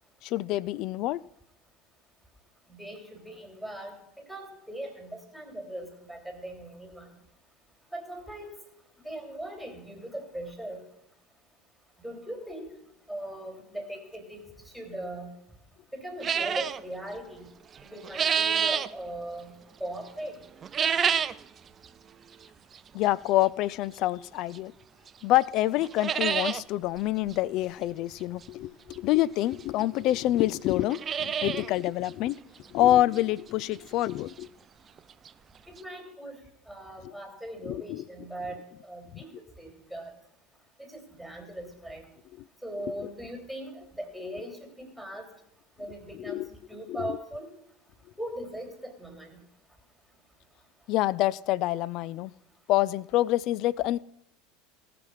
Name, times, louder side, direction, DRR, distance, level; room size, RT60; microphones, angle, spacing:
voice 1, 0.2-1.2 22.9-24.7 25.2-32.4 32.7-34.5 37.6-38.0 39.1-39.2 43.0-43.1 46.1-46.5 46.9-47.2 50.9-52.3 52.7-54.0, left 15 dB, 50° left, 22 dB, 0.4 m, -27 dB
voice 2, 2.7-3.9 4.3-7.1 7.9-8.6 9.0-10.8 12.0-12.7 13.1-14.4 14.7-15.3 15.9-17.5 17.8-19.5 19.8-20.4 35.7-36.4 36.7-39.3 39.6-40.1 40.8-42.1 42.6-45.2 45.8-46.4 46.7-47.5 48.2-49.4, right 1 dB, ahead, 2 dB, 3.1 m, -39 dB
sound 1, 16.2-16.8 17.8-18.9 20.6-21.4 21.8-21.9 22.8-22.9 24.5-24.6 25.1-25.2 25.4-25.5 25.8-26.6 27.0-27.1 27.3-27.4 28.9-29.0 29.8-29.9 30.1-30.2 30.7-31.7 32.1-32.2 32.7-32.8 33.2-33.3 35.0-35.1 35.3-35.4 35.8-35.9, right 7 dB, 30° right, 0.4 m, -27 dB
17.5 x 6.0 x 5.6 m, 0.76 s
figure-of-eight pair, 75°, 0 cm